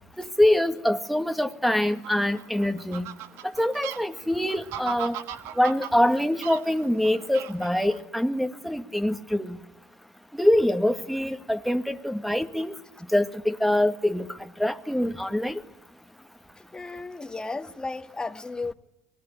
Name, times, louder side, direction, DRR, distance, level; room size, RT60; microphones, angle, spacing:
voice 1, 0.2-3.1 3.4-5.2 5.6-9.6 10.3-12.8 13.1-15.6, left 1 dB, ahead, 1.9 m, -24 dB
Fowl, 1.8-8.0, right 11 dB, 70° right, 1.5 m, -39 dB
voice 2, 16.7-18.7, left 3 dB, 15° left, 1.8 m, -34 dB
25.5 x 21.0 x 9.5 m
supercardioid pair, 85°, 5 cm